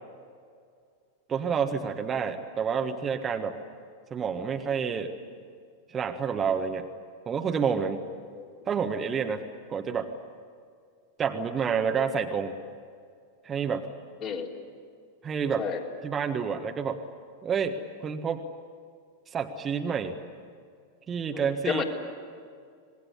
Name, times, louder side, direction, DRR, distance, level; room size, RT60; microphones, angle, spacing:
voice 1, 1.3-3.6 4.1-5.1 5.9-6.9 7.3-8.0 8.7-9.4 9.7-10.1 11.2-12.5 13.4-13.9 15.2-15.6 16.0-17.0 17.4-18.4 19.3-20.2 21.1-21.8, right 6 dB, 25° right, 5 dB, 1.5 m, -29 dB
voice 2, 8.1-8.5 14.2-14.5 15.6-15.8 21.3-21.8, left 6 dB, 35° left, 0 dB, 3.7 m, -32 dB
26.5 x 20.5 x 10.0 m, 2.2 s
figure-of-eight pair, 90°, 0 cm